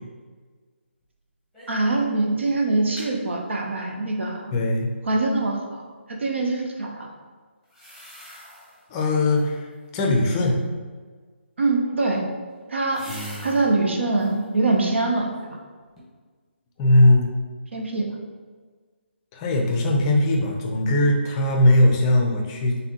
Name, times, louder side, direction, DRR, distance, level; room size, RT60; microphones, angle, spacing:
sound 1, 1.5-1.9 2.2-2.3 2.6-3.1 7.6-8.8 9.2-9.7 11.7-13.7 14.1-14.5 15.0-15.6 16.0-16.1, equal, 5° right, 1.1 m, -45 dB
voice 1, 1.7-4.6 5.1-7.1 11.6-12.2 12.7-13.1 13.4-15.3 17.7-18.2, right 2 dB, 70° right, 1 dB, 0.8 m, -24 dB
voice 2, 4.5-4.9 8.9-9.7 9.9-10.6 13.1-13.6 16.8-17.3 19.3-22.8, left 1 dB, 20° left, 0 dB, 0.5 m, -20 dB
4.2 x 3.4 x 2.9 m, 1.5 s
figure-of-eight pair, 155°, 7 cm